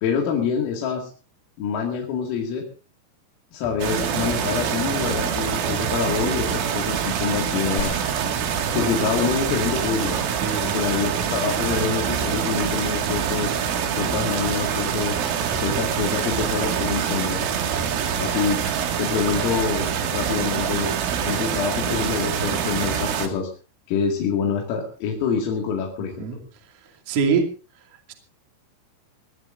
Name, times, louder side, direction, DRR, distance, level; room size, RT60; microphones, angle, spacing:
voice 1, 0.0-1.1 1.6-2.6 3.5-7.9 8.7-10.2 10.6-13.5 13.9-15.2 15.5-17.4 18.2-18.6 19.0-20.9 21.2-23.5 23.9-26.3, left 6 dB, 80° left, 0 dB, 4.9 m, -26 dB
sound 1, 3.6-4.2 5.6-6.5 7.9-8.6 10.2-10.9 13.5-14.1 15.5-16.4 17.7-18.5 20.0-20.7, right 2 dB, ahead, 2.2 m, -42 dB
sound 2, 3.8-23.3, right 8 dB, 75° right, 4.5 m, -25 dB
sound 3, 7.8-9.7 10.0-10.1, left 4 dB, 50° left, 2.3 m, -37 dB
voice 2, 10.4-10.8 21.2-21.4 26.0-26.4 26.7-27.5 27.9-28.1, right 5 dB, 40° right, 3 dB, 2.7 m, -26 dB
22.0 x 19.5 x 2.6 m, 0.36 s
omnidirectional pair, 5.8 m